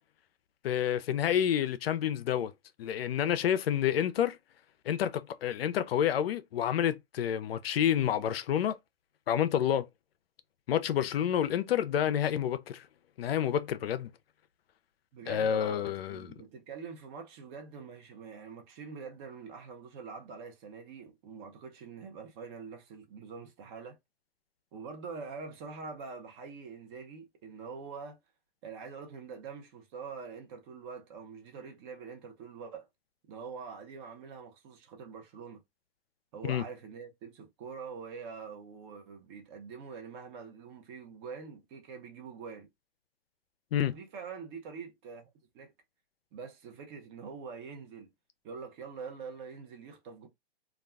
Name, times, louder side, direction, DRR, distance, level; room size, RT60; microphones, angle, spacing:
voice 1, 0.6-2.5 2.8-4.4 4.9-8.8 9.3-9.9 10.7-12.9 13.2-14.1 15.3-16.3 36.4-36.6 43.7-44.0, left 9 dB, 70° left, 0.5 m, -29 dB
voice 2, 15.1-24.0 24.7-28.2 28.6-32.9 33.3-35.6 36.3-42.7 43.9-45.3 45.5-45.7 46.3-48.1 48.4-50.3, right 5 dB, 25° right, 0.6 m, -45 dB
2.3 x 2.2 x 3.3 m
hypercardioid pair, 145°, 31 cm